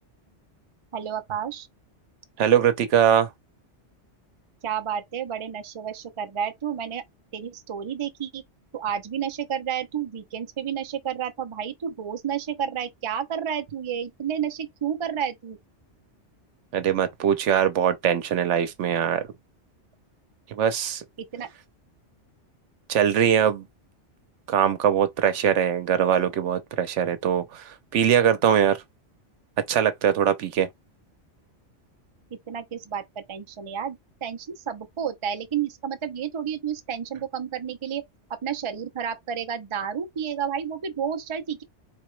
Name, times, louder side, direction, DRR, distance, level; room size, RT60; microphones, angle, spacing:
voice 1, 0.9-1.7 4.6-7.0 7.3-8.4 8.7-15.6 21.3-21.5 32.5-38.0 38.4-41.6, right 8 dB, 40° right, 0.4 m, -31 dB
voice 2, 2.4-3.3 16.7-19.2 20.5-21.0 22.9-23.6 24.5-28.8 29.7-30.7, right 9 dB, 75° right, 1.0 m, -22 dB
4.0 x 2.8 x 3.1 m
omnidirectional pair, 1.2 m